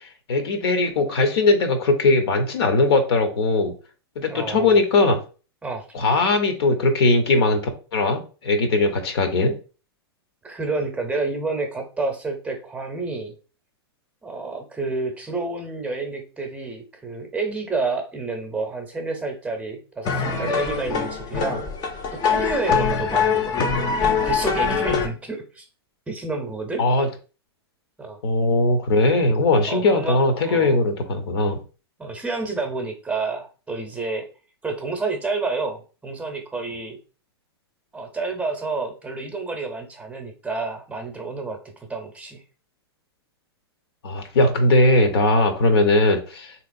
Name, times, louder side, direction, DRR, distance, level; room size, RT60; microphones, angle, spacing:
voice 1, 0.3-3.7 4.2-5.2 5.9-7.6 7.9-9.6 26.8-27.1 28.2-31.6 44.0-46.5, left 2 dB, 70° left, 7 dB, 0.8 m, -19 dB
voice 2, 4.3-4.8 5.6-5.9 10.4-13.4 14.2-21.7 22.1-23.7 24.0-25.6 26.1-26.8 28.0-28.2 29.7-30.8 32.0-34.3 34.6-37.0 37.9-42.4 45.7-45.8, right 3 dB, 10° right, 3 dB, 0.7 m, -29 dB
sound 1, 20.0-25.1, left 6 dB, 30° left, 0.6 m, -23 dB
3.5 x 2.9 x 2.5 m, 0.35 s
hypercardioid pair, 120°, 14 cm